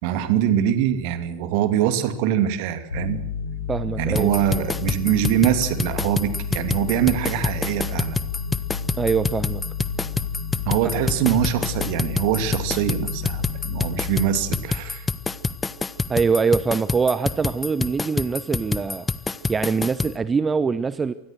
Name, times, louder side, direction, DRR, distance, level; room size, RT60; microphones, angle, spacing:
voice 1, 0.0-3.2 4.0-8.2 10.7-15.1, right 10 dB, 45° right, 11 dB, 2.8 m, -23 dB
sound 1, 2.9-16.1, left 6 dB, 75° left, 6.5 m, -31 dB
voice 2, 3.7-4.3 9.0-9.6 16.1-19.1 19.5-21.1, right 5 dB, 15° right, 15 dB, 0.9 m, -23 dB
sound 2, 4.2-20.1, left 4 dB, 10° left, 1.0 m, -27 dB
27.5 x 20.5 x 6.3 m, 0.83 s
figure-of-eight pair, 90°, 0 cm